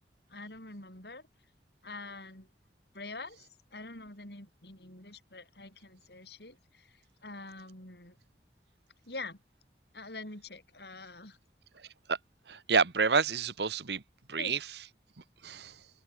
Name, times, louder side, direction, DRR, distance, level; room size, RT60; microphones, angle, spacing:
voice 1, 0.3-1.2 1.8-2.5 2.9-8.2 9.1-9.4 9.9-11.4 14.4-14.6, left 3 dB, 65° left, 7.8 m, -45 dB
voice 2, 12.5-14.0 14.3-14.6 15.4-15.7, right 5 dB, 70° right, 1.2 m, -28 dB
open air
head